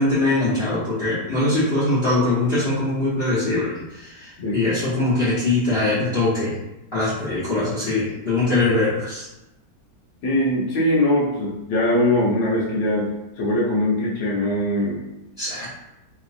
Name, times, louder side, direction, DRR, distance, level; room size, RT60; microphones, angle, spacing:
voice 1, 0.0-6.6 6.9-9.3 15.4-15.7, left 2 dB, 40° left, -13 dB, 1.3 m, -22 dB
voice 2, 10.2-13.1 13.4-15.0, left 1 dB, 70° left, -5 dB, 1.4 m, -21 dB
3.4 x 3.0 x 2.5 m, 0.93 s
omnidirectional pair, 1.8 m